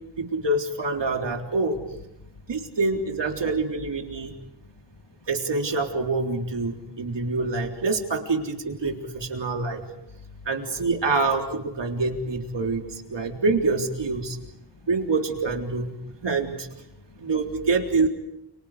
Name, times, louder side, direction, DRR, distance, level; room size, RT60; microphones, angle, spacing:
voice 1, 0.2-1.8 2.5-4.3 5.3-9.9 10.5-14.4 14.9-16.0 16.2-16.7 17.2-18.1, right 3 dB, 80° right, 2 dB, 3.7 m, -26 dB
voice 2, 4.1-4.7 6.8-7.0 10.1-10.5 14.4-14.7 16.1-16.2 16.9-17.3, left 3 dB, 80° left, 6 dB, 2.7 m, -49 dB
30.0 x 30.0 x 5.0 m, 0.85 s
wide cardioid pair, 115°, 42 cm